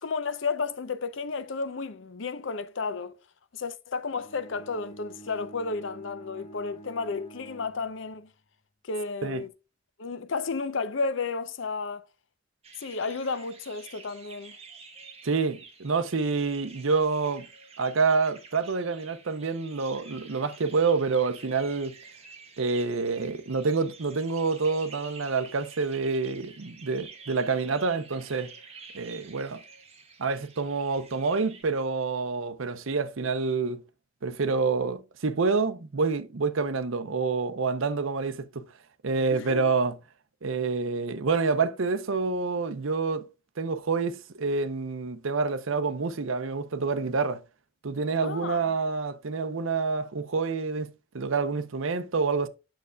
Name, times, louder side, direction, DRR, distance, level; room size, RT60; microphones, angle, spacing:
voice 1, 0.0-3.1 3.5-8.3 8.8-9.5 10.0-12.0 12.8-14.5 39.3-39.7 48.2-48.7, left 4 dB, 65° left, 0.6 m, -32 dB
Bowed string instrument, 4.1-8.4, right 3 dB, 30° left, 1.2 m, -49 dB
sound 1, 12.6-31.6, right 5 dB, 30° right, 1.4 m, -49 dB
voice 2, 15.2-17.5 17.8-21.9 22.6-28.5 28.9-29.6 30.2-33.8 34.2-38.7 39.0-40.0 40.4-43.2 43.6-47.4 47.8-52.5, right 4 dB, 75° right, 0.7 m, -27 dB
9.0 x 6.7 x 2.3 m
head